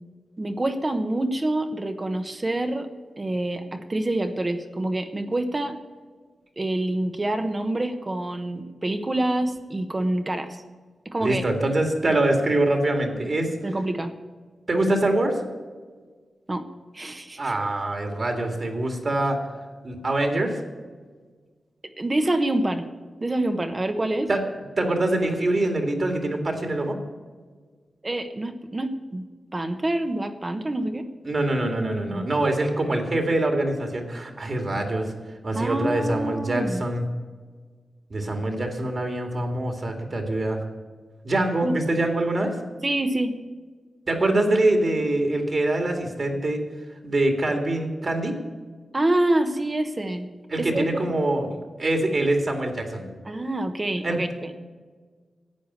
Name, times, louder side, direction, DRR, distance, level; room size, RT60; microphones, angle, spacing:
voice 1, 0.4-2.9 3.2-5.8 6.6-10.6 11.0-11.4 13.6-14.1 16.5-16.7 16.9-17.5 22.0-22.9 23.2-24.3 28.0-29.3 29.5-31.1 32.1-32.3 35.5-36.8 41.6-41.8 42.8-43.3 48.9-50.3 50.6-51.0 53.2-54.5, right 1 dB, 25° right, 7 dB, 1.0 m, -26 dB
voice 2, 11.2-13.5 14.7-15.4 17.4-19.4 19.8-20.6 24.3-24.4 24.8-27.0 31.2-35.1 35.4-37.1 38.1-40.6 41.2-42.6 44.1-46.6 47.0-48.3 50.5-51.5 51.8-53.0 54.0-54.2, right 1 dB, 40° right, 4 dB, 2.1 m, -24 dB
11.5 x 8.9 x 9.2 m, 1.5 s
wide cardioid pair, 160°, 0 cm